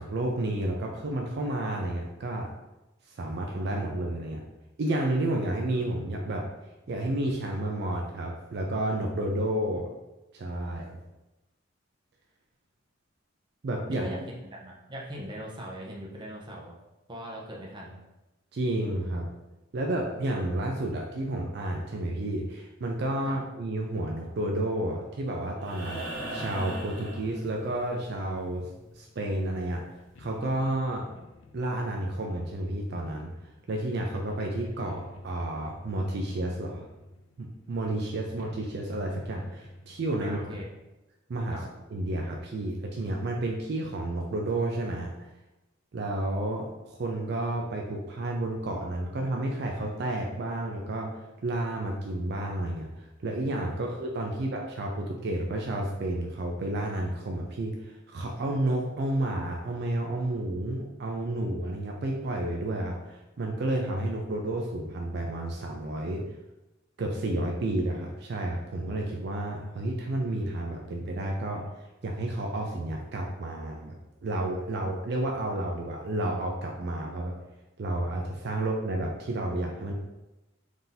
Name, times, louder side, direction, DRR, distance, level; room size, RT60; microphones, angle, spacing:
voice 1, 0.0-2.5 3.1-4.4 4.8-6.5 6.9-9.9 10.3-11.0 13.6-14.1 18.5-19.3 19.7-26.0 26.3-28.7 29.0-29.8 30.2-31.1 31.5-36.9 37.4-40.4 41.3-41.6 41.9-45.3 45.9-66.2 67.0-74.0 74.2-77.3 77.8-79.9, right 1 dB, 55° right, 0 dB, 0.4 m, -31 dB
voice 2, 13.9-16.7 17.1-18.0 23.2-23.4 40.2-40.7 41.5-41.7 78.5-78.7, equal, 25° right, -3 dB, 0.7 m, -40 dB
sound 1, 25.6-27.9 29.8-29.9, right 1 dB, 70° right, 1.1 m, -38 dB
sound 2, 25.9-40.8, left 1 dB, 90° left, 0.5 m, -49 dB
3.6 x 2.7 x 3.9 m, 1.0 s
head